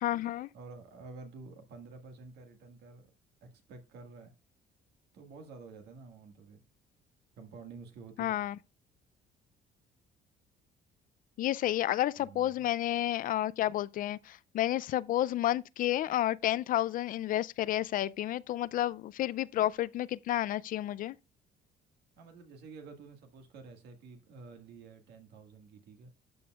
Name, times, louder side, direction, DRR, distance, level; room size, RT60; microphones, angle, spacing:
voice 1, 0.0-0.5 8.2-8.6 11.4-21.2, left 13 dB, 55° left, 0.4 m, -31 dB
voice 2, 0.5-3.1 3.4-4.3 5.1-6.6 7.4-8.5 12.2-12.7 22.2-26.1, right 4 dB, 75° right, 1.8 m, -50 dB
12.0 x 6.9 x 2.4 m
cardioid pair, 110°, 17 cm